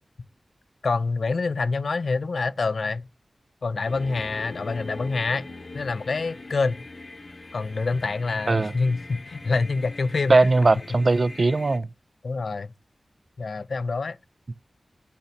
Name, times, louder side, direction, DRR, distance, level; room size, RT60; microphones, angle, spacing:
voice 1, 0.8-3.1 3.6-5.5 5.7-6.8 7.5-10.4 12.2-12.7 13.4-14.2, left 4 dB, 75° left, 0.4 m, -26 dB
sound 1, 3.9-11.8, left 2 dB, 45° left, 0.9 m, -42 dB
voice 2, 10.3-11.9 14.5-14.6, right 3 dB, 50° right, 0.3 m, -19 dB
5.5 x 4.3 x 5.1 m
wide cardioid pair, 85°, 0 cm